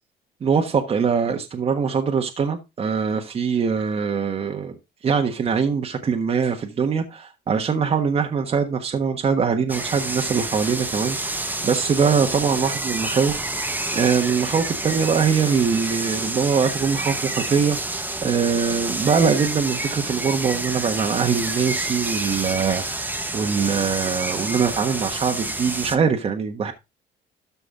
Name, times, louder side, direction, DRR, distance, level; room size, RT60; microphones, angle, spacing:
voice 1, 0.4-4.7 5.0-13.7 13.9-26.7, right 6 dB, 35° right, 1.4 m, -22 dB
sound 1, 9.7-26.0, right 2 dB, 10° right, 1.1 m, -28 dB
13.0 x 5.4 x 3.8 m
cardioid pair, 110°, 17 cm